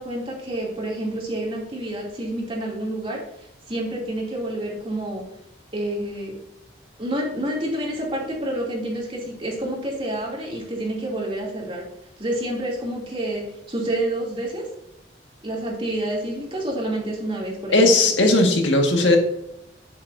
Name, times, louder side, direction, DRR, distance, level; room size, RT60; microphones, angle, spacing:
voice 1, 0.0-5.3 5.7-6.3 7.0-11.9 12.2-14.7 15.4-17.9, right 1 dB, 30° right, -3 dB, 3.0 m, -28 dB
voice 2, 17.7-19.2, left 2 dB, 85° left, 2 dB, 1.9 m, -17 dB
10.0 x 9.5 x 2.8 m, 0.83 s
head